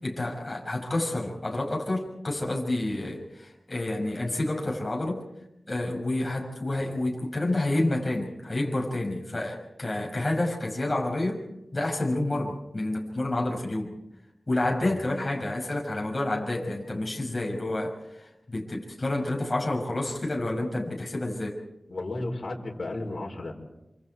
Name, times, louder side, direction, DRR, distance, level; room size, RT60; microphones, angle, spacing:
voice 1, 0.0-5.2 5.7-11.4 11.7-13.9 14.5-21.6, left 2 dB, 30° left, -1 dB, 6.1 m, -29 dB
voice 2, 21.9-23.5, left 2 dB, 55° left, 0 dB, 4.9 m, -33 dB
27.5 x 26.5 x 4.7 m, 0.91 s
wide cardioid pair, 90°, 0 cm